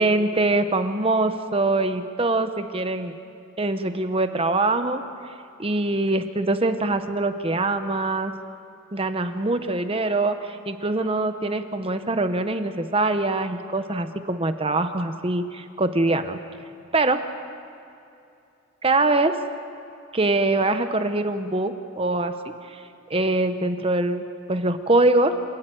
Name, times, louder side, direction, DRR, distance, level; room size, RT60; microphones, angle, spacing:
voice 1, 0.0-3.1 3.6-5.0 5.6-8.3 8.9-16.4 16.9-17.2 18.8-19.4 20.1-22.3 22.7-22.8 23.1-24.2 24.5-25.4, right 2 dB, 25° right, 9 dB, 0.9 m, -23 dB
28.0 x 12.5 x 9.2 m, 2.6 s
head